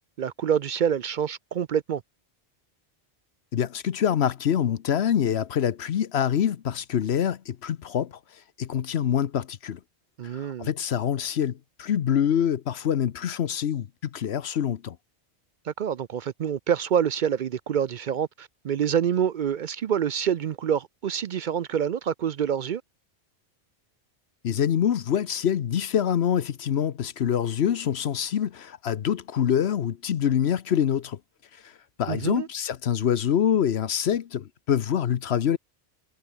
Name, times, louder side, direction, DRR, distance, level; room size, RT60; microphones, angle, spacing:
voice 1, 0.2-2.0 10.2-10.7 15.6-22.8 32.1-32.5, right 8 dB, 55° right, 0.6 m, -26 dB
voice 2, 3.5-9.8 10.3-15.0 24.4-31.2 31.6-31.7 32.0-35.6, left 9 dB, 70° left, 1.0 m, -25 dB
omnidirectional pair, 1.1 m